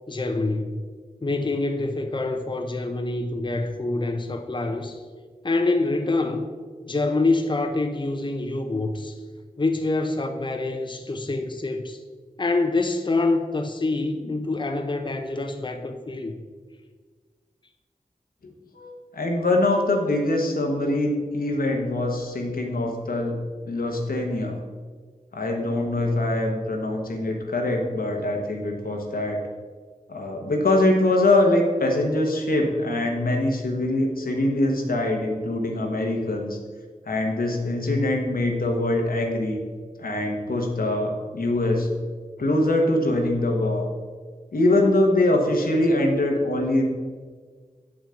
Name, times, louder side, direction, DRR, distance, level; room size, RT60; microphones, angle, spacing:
voice 1, 0.1-0.8 1.2-5.0 5.4-6.5 6.9-9.2 9.6-12.0 12.4-16.3, left 2 dB, 35° left, 5 dB, 0.7 m, -26 dB
voice 2, 18.7-23.4 23.6-24.6 25.3-29.4 30.1-36.6 37.1-39.6 40.0-41.9 42.4-43.8 44.5-46.9, left 1 dB, 85° left, 1 dB, 1.2 m, -23 dB
7.3 x 6.0 x 5.0 m, 1.5 s
cardioid pair, 45°, 15 cm